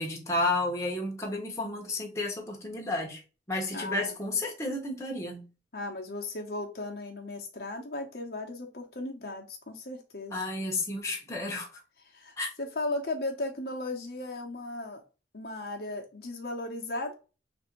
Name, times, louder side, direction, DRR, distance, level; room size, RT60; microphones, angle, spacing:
voice 1, 0.0-3.2 3.5-5.4 10.3-11.7 12.4-12.5, left 2 dB, 15° left, 0.9 m, -31 dB
voice 2, 3.7-4.2 5.7-10.4 12.0-15.0 15.3-17.1, left 2 dB, 55° left, 0.8 m, -36 dB
3.4 x 2.6 x 4.3 m
head